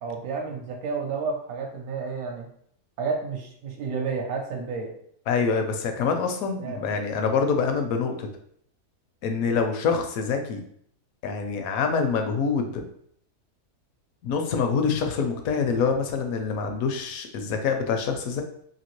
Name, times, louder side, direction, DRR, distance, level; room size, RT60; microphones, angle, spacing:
voice 1, 0.0-2.5 3.0-4.9 6.6-6.8, right 4 dB, 75° right, 1 dB, 1.1 m, -31 dB
voice 2, 5.3-8.3 9.2-10.6 11.2-12.9 14.2-18.4, left 5 dB, 70° left, 5 dB, 1.0 m, -25 dB
2.9 x 2.8 x 3.0 m, 0.66 s
omnidirectional pair, 1.6 m